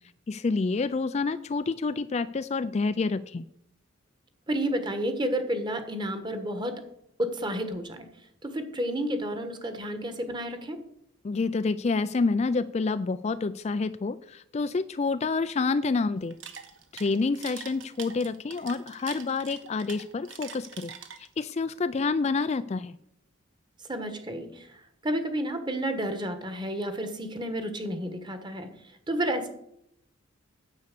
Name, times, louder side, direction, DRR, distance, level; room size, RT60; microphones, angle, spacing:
voice 1, 0.3-3.4 11.2-16.3 16.9-20.9 21.4-22.9, left 4 dB, 30° left, 12 dB, 0.3 m, -28 dB
voice 2, 4.5-6.8 7.2-8.1 8.4-10.8 23.9-24.7 25.0-28.7 29.1-29.5, right 1 dB, 20° right, 8 dB, 1.3 m, -31 dB
sound 1, 16.2-21.5, right 7 dB, 65° right, 1.3 m, -44 dB
9.7 x 8.2 x 6.7 m, 0.74 s
head